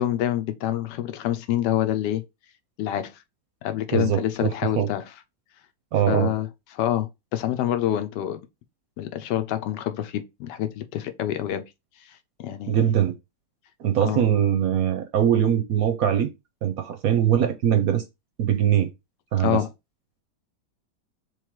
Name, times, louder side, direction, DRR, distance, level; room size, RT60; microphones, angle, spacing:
voice 1, 0.0-2.2 2.8-3.2 3.6-5.0 6.1-6.5 6.7-8.4 9.0-11.7 12.0-12.8 14.0-14.2 19.4-19.7, left 12 dB, 75° left, 1.2 m, -27 dB
voice 2, 3.9-4.9 5.9-6.3 12.7-13.1 13.8-16.3 16.6-18.0 18.4-18.9 19.3-19.6, right 10 dB, 70° right, 0.9 m, -22 dB
3.7 x 3.2 x 4.5 m
omnidirectional pair, 1.9 m